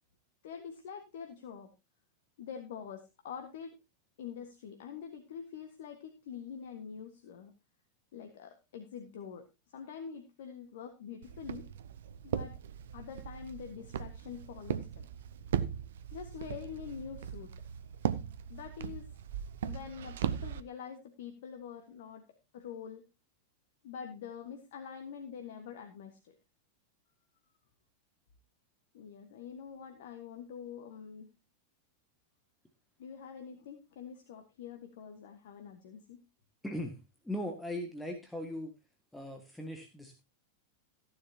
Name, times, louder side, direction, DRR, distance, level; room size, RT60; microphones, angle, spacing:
voice 1, 0.4-1.7 2.4-3.8 4.2-7.5 8.1-9.5 9.7-11.7 12.2-12.6 12.9-15.1 16.1-17.5 18.5-19.1 19.6-23.0 23.8-26.4 28.9-31.3 33.0-36.2, left 7 dB, 55° left, 5 dB, 1.6 m, -45 dB
Walk footsteps, 11.2-20.6, right 9 dB, 60° right, 0.8 m, -38 dB
voice 2, 36.6-37.0 37.2-38.7 39.1-40.2, left 1 dB, 5° left, 3 dB, 1.8 m, -39 dB
15.0 x 10.5 x 2.8 m, 0.26 s
figure-of-eight pair, 90°, 0 cm